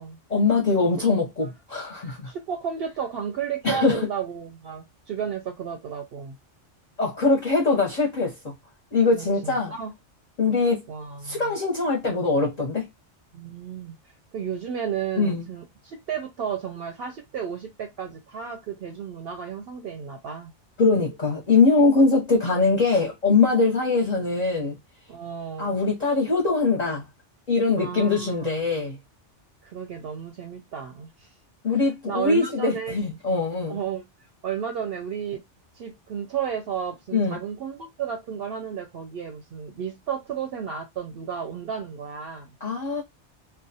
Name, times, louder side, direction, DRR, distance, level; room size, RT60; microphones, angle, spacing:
voice 1, 0.3-2.3 3.6-4.1 7.0-8.5 8.9-9.7 10.4-10.9 11.2-12.9 15.2-15.4 20.8-24.8 25.6-27.0 27.5-29.0 31.6-33.8 37.1-37.4 42.6-43.0, left 3 dB, 45° left, 0.7 m, -22 dB
voice 2, 2.0-6.4 9.1-9.9 10.9-11.5 13.3-14.0 14.3-20.5 25.1-25.7 27.8-28.6 29.6-31.3 31.7-33.0 33.7-34.1 34.4-35.4 35.7-42.5, right 7 dB, 65° right, 0.7 m, -33 dB
2.4 x 2.1 x 2.6 m
omnidirectional pair, 1.2 m